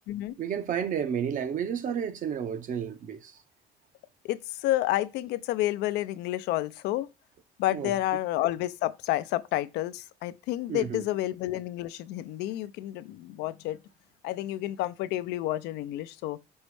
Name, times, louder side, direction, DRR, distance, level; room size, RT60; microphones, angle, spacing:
voice 1, 0.4-3.3 7.7-7.9 10.7-11.0, right 8 dB, 50° right, 0.7 m, -31 dB
voice 2, 4.2-7.1 7.6-13.8 14.2-16.4, left 15 dB, 90° left, 0.4 m, -30 dB
5.4 x 2.0 x 4.6 m
cardioid pair, 110°, 17 cm